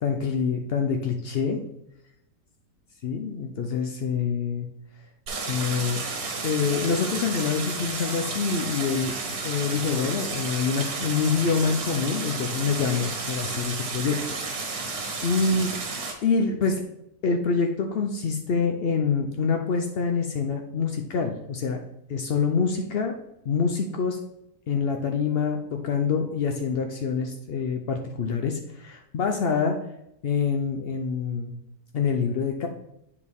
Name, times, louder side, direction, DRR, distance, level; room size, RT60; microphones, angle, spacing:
voice 1, 0.0-1.6 3.0-4.7 5.5-6.0 6.4-9.1 9.4-14.2 14.5-15.7 16.2-16.8 17.2-21.8 22.1-23.1 23.4-24.2 24.7-29.8 30.2-31.5 31.9-32.7, left 5 dB, 85° left, 3 dB, 0.5 m, -26 dB
Stream, 5.3-16.1, right 3 dB, 65° right, 1.6 m, -32 dB
8.2 x 4.8 x 3.5 m, 0.82 s
omnidirectional pair, 1.8 m